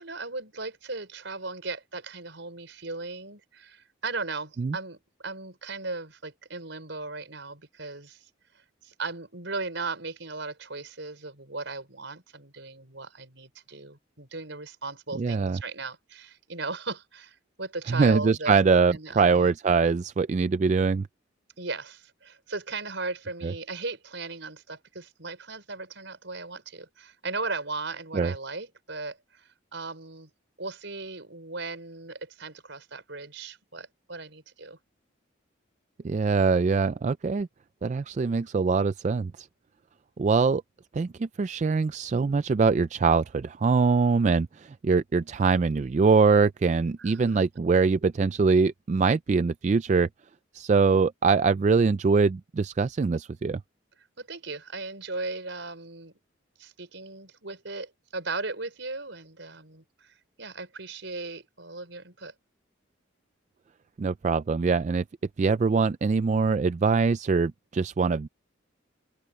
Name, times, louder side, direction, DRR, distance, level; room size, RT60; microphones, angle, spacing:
voice 1, 0.0-5.0 5.2-8.2 8.8-18.5 18.9-19.5 21.6-30.3 30.6-34.8 47.0-47.1 54.2-56.1 56.6-62.3, right 3 dB, 65° right, 5.1 m, -37 dB
voice 2, 15.1-15.6 17.9-21.1 23.4-23.5 28.1-28.3 36.0-37.5 37.8-39.5 40.2-40.6 40.9-50.1 50.5-53.6 64.0-65.0 65.4-68.3, right 4 dB, 35° right, 0.3 m, -23 dB
open air
head